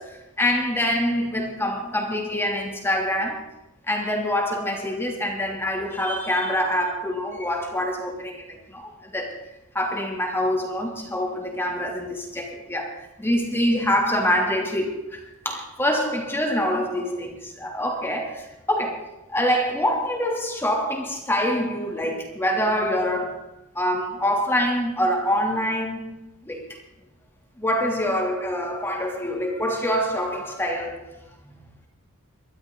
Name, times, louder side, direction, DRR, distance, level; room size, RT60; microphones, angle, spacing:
voice 1, 0.0-3.5 3.9-23.4 23.7-26.1 26.4-26.8 27.6-31.2, equal, 10° left, 3.0 m, -25 dB
24.0 x 12.5 x 3.9 m
head